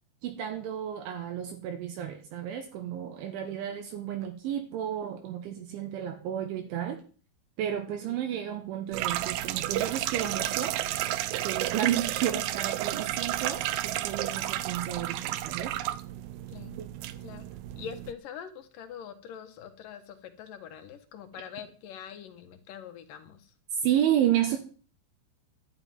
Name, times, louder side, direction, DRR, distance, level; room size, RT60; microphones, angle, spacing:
voice 1, 0.2-7.0 7.6-10.8 11.4-15.7 16.8-16.9 23.8-24.6, right 10 dB, 75° right, 5 dB, 3.5 m, -31 dB
sound 1, 8.9-18.1, right 14 dB, 90° right, 2.4 m, -32 dB
voice 2, 17.8-23.5, left 8 dB, 70° left, 7 dB, 2.1 m, -44 dB
12.0 x 7.0 x 9.4 m, 0.39 s
omnidirectional pair, 5.9 m